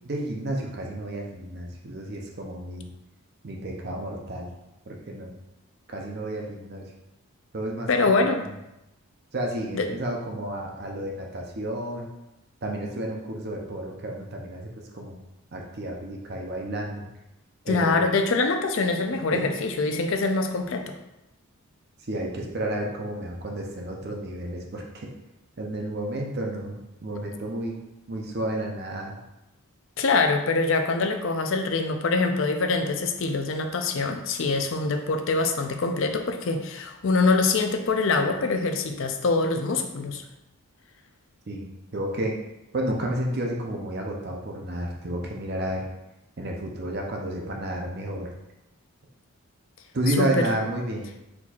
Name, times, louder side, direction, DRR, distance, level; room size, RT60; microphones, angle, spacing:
voice 1, 0.0-2.9 3.4-4.5 4.9-5.3 5.9-6.9 7.5-7.9 8.2-8.3 9.3-12.1 12.6-15.2 15.5-17.1 17.7-18.1 19.3-19.5 22.1-25.1 25.6-27.8 28.1-29.2 41.5-41.7 41.9-42.3 42.7-45.8 46.4-48.3 49.9-51.1, right 1 dB, 45° right, 0 dB, 0.6 m, -31 dB
voice 2, 7.9-8.5 9.7-9.9 17.7-20.9 30.0-40.2 50.2-50.5, left 3 dB, 60° left, 6 dB, 0.4 m, -24 dB
4.4 x 4.1 x 2.4 m, 0.91 s
head